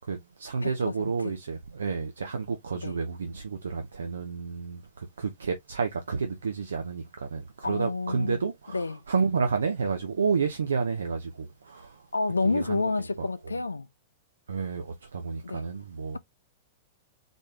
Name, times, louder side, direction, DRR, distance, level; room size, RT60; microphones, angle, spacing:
voice 1, 0.0-12.1 12.4-12.9 13.2-13.5 14.5-16.2, right 5 dB, 70° right, 0.8 m, -30 dB
voice 2, 0.6-1.3 2.7-3.0 7.6-8.4 8.7-9.0 12.1-13.9 15.4-15.6, left 3 dB, 80° left, 0.5 m, -29 dB
4.2 x 3.3 x 3.3 m
figure-of-eight pair, 100°, 0 cm